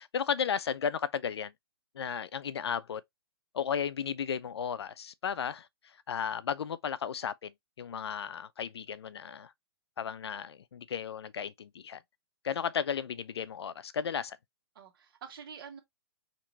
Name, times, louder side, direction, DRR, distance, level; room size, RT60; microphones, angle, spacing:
voice 1, 0.0-1.5 1.9-3.0 3.5-5.7 6.1-7.5 7.8-9.5 10.0-12.0 12.4-14.4, left 7 dB, 80° left, 0.4 m, -34 dB
voice 2, 14.7-15.8, right 7 dB, 60° right, 1.4 m, -47 dB
4.3 x 2.9 x 2.6 m
hypercardioid pair, 130°, 13 cm